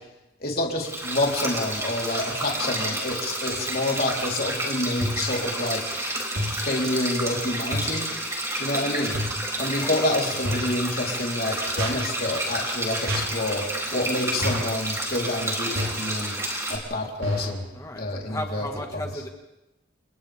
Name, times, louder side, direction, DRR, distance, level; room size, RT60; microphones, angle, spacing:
voice 1, 0.4-6.0 6.5-8.1 8.6-9.2 9.6-13.6 13.9-16.4 16.7-17.7 18.0-18.7 18.9-19.0, left 1 dB, 50° left, -1 dB, 3.9 m, -28 dB
sound 1, 0.8-16.8, right 1 dB, 15° right, 4.5 m, -30 dB
sound 2, 5.0-5.4 6.4-6.7 7.7-8.0 9.1-9.5 10.4-10.8 11.8-12.1 13.1-13.4 14.4-14.8 15.7-16.1 17.2-17.6, equal, 75° right, 4.9 m, -29 dB
voice 2, 17.7-19.3, left 1 dB, 15° left, 2 dB, 1.7 m, -35 dB
30.0 x 29.0 x 3.6 m, 0.95 s
head